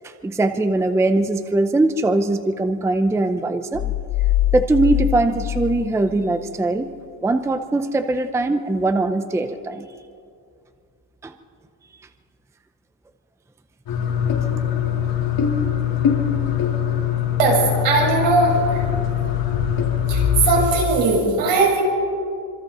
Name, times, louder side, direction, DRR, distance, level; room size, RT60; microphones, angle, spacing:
voice 1, 0.2-3.9 4.5-6.9 7.2-9.9 11.2-11.3, right 2 dB, 5° right, 8 dB, 0.6 m, -21 dB
sound 1, 3.7-6.5, left 13 dB, 85° left, 1.2 m, -23 dB
sound 2, 13.9-20.6, left 9 dB, 50° left, 3.9 m, -22 dB
voice 2, 17.4-18.9 20.1-21.8, right 3 dB, 80° right, -2 dB, 7.3 m, -19 dB
25.5 x 25.0 x 4.3 m, 2.4 s
cardioid pair, 160°, 44 cm